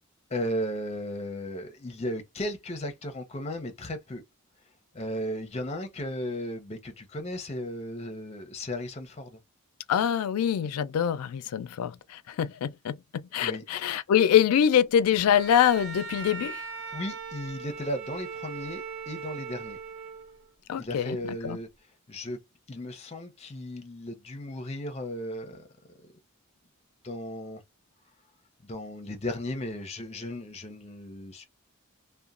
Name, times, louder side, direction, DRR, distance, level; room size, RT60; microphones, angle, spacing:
voice 1, 0.3-4.2 4.9-9.4 13.4-13.6 16.9-19.8 20.8-21.7 22.1-22.4 22.7-25.7 27.0-27.6 28.6-31.5, left 1 dB, 30° left, 0.6 m, -35 dB
voice 2, 9.9-12.0 12.3-16.6 20.7-21.2 21.4-21.6, left 9 dB, 85° left, 0.3 m, -24 dB
Bowed string instrument, 15.2-20.5, right 5 dB, 65° right, 0.7 m, -39 dB
2.9 x 2.1 x 2.4 m
head